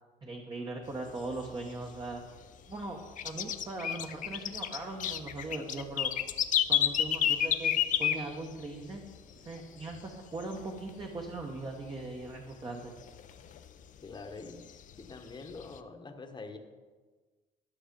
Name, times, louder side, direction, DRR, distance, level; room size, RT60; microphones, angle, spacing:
voice 1, 0.2-2.2 2.7-6.1 6.7-9.0 9.4-12.9, right 2 dB, 25° right, 1 dB, 1.1 m, -40 dB
sound 1, 0.9-2.4 2.8-8.8 9.1-9.2 9.5-10.1 10.4-11.5 11.8-11.9 12.3-12.4 12.9-14.0 14.5-15.8, left 10 dB, 50° left, 0.6 m, -30 dB
voice 2, 14.0-16.6, left 3 dB, 25° left, 5 dB, 1.2 m, -45 dB
12.0 x 6.3 x 5.2 m, 1.4 s
cardioid pair, 110°, 17 cm